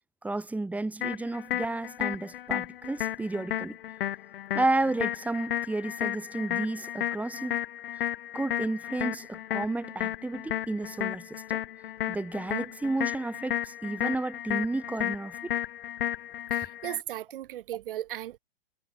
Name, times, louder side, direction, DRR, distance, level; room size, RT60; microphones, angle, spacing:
voice 1, 0.2-3.8 4.5-7.6 8.3-11.6 12.1-15.5, right 2 dB, 5° right, 3.0 m, -32 dB
sound 1, 1.0-17.0, left 12 dB, 60° left, 2.6 m, -33 dB
voice 2, 16.5-18.4, right 13 dB, 60° right, 6.4 m, -36 dB
hypercardioid pair, 125°, 31 cm